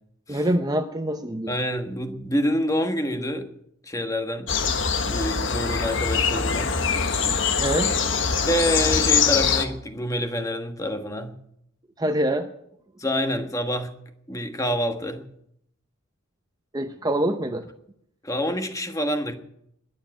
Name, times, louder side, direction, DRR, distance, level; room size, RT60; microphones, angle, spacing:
voice 1, 0.3-1.5 7.6-8.0 12.0-12.5 16.7-17.7, right 1 dB, 20° right, 7 dB, 0.7 m, -25 dB
voice 2, 1.5-3.5 3.8-4.5 5.0-6.7 8.5-11.3 13.0-13.9 14.3-15.2 18.2-19.3, equal, 15° left, 6 dB, 1.4 m, -27 dB
sound 1, 4.5-9.6, left 6 dB, 60° left, 1.3 m, -23 dB
21.0 x 7.6 x 8.9 m, 0.74 s
head